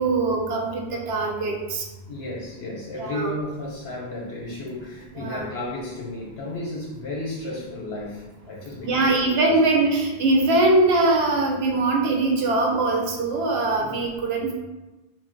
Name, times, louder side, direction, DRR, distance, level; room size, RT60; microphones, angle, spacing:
voice 1, 0.0-1.9 3.0-3.4 5.1-5.5 8.8-14.5, right 2 dB, 75° right, 0 dB, 0.8 m, -22 dB
voice 2, 2.1-9.4 13.8-14.0, left 2 dB, 80° left, -4 dB, 0.9 m, -33 dB
2.6 x 2.1 x 3.7 m, 1.1 s
omnidirectional pair, 1.1 m